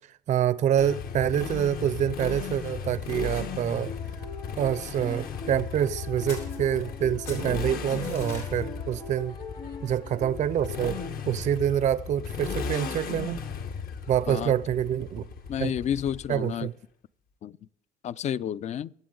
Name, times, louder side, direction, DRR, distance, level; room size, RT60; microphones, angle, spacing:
voice 1, 0.3-3.9 4.6-9.4 9.8-13.4 14.1-15.3 15.6-15.7 16.3-16.7, right 10 dB, 45° right, 0.4 m, -26 dB
Motorcycle, 0.8-16.6, left 6 dB, 60° left, 1.2 m, -36 dB
sound 1, 3.9-11.1, left 5 dB, 25° left, 0.9 m, -42 dB
sound 2, 6.3-7.0 7.2-8.5, left 5 dB, 80° left, 4.6 m, -44 dB
voice 2, 15.5-16.7 17.4-17.6 18.0-18.9, left 9 dB, 45° left, 0.4 m, -30 dB
23.5 x 7.9 x 3.8 m
cardioid pair, 110°, 17 cm